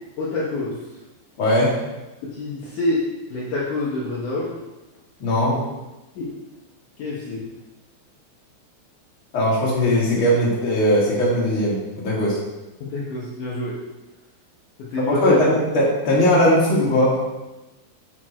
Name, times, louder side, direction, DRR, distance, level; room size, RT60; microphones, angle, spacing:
voice 1, 0.2-0.8 2.2-3.0 3.3-4.6 5.5-5.6 6.2-6.3 7.0-7.5 12.8-13.8 14.8-15.5, left 2 dB, 80° left, -6 dB, 1.8 m, -27 dB
voice 2, 1.4-1.7 5.2-5.5 9.3-12.4 15.0-17.1, equal, 40° left, -5 dB, 2.0 m, -19 dB
7.1 x 6.0 x 4.5 m, 1.0 s
omnidirectional pair, 5.4 m